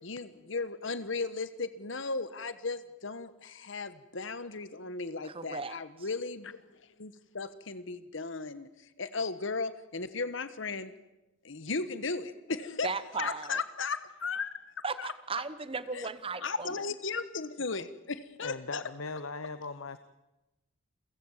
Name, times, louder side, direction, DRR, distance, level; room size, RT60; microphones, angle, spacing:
voice 1, 0.0-8.7 9.0-10.9 11.4-12.9 13.2-14.6 15.0-15.1 15.9-16.1 16.4-18.8, left 4 dB, 65° left, 13 dB, 1.2 m, -36 dB
voice 2, 5.2-5.8 12.8-13.6 14.8-16.7, right 4 dB, 25° right, 14 dB, 1.0 m, -36 dB
voice 3, 18.4-20.0, left 3 dB, 85° left, 12 dB, 0.9 m, -39 dB
30.0 x 16.0 x 7.3 m, 1.0 s
head